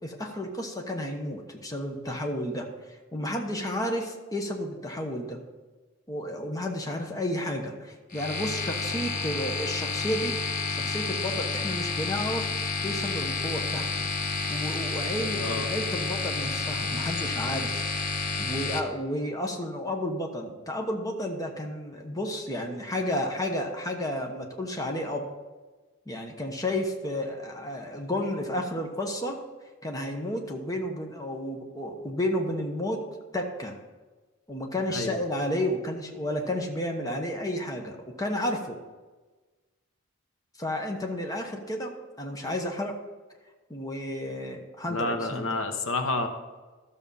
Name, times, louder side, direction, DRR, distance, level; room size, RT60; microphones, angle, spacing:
voice 1, 0.0-5.4 6.1-10.4 10.7-12.5 12.8-13.9 14.5-17.8 18.4-25.3 26.1-29.4 29.8-33.1 33.3-33.8 34.5-38.8 40.6-41.9 42.2-43.0 43.7-45.5, left 1 dB, 15° left, 2 dB, 1.1 m, -32 dB
sound 1, 8.1-18.8, left 4 dB, 40° left, 0.9 m, -30 dB
voice 2, 15.3-15.7 34.9-35.2 44.9-46.3, left 3 dB, 70° left, 7 dB, 1.0 m, -29 dB
13.0 x 7.0 x 5.5 m, 1.3 s
head